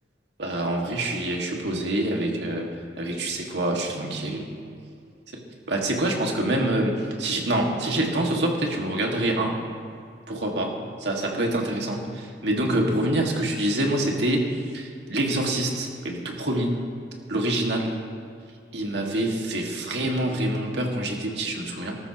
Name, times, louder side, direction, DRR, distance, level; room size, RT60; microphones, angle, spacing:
voice 1, 0.4-2.7 3.0-4.4 5.7-9.6 10.3-16.8 17.3-18.0 18.7-22.0, right 1 dB, 80° right, 0 dB, 2.0 m, -26 dB
19.5 x 13.0 x 3.0 m, 2.3 s
head